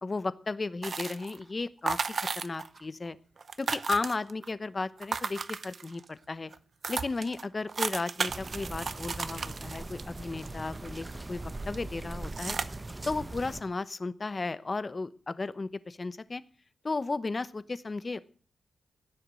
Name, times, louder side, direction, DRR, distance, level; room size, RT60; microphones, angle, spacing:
voice 1, 0.0-3.2 3.6-6.5 6.9-12.6 13.1-16.4 16.8-18.2, left 3 dB, 30° left, 15 dB, 0.9 m, -34 dB
sound 1, 0.8-1.4 1.9-2.8 3.1-3.2 3.4-4.5 5.0-6.1 6.5-6.6 6.8-11.1 11.5-11.8 12.2-12.6, right 4 dB, 45° right, 0.7 m, -34 dB
sound 2, 8.3-13.6, right 2 dB, 20° right, 0.9 m, -40 dB
16.0 x 10.5 x 7.7 m, 0.43 s
wide cardioid pair, 120°, 0 cm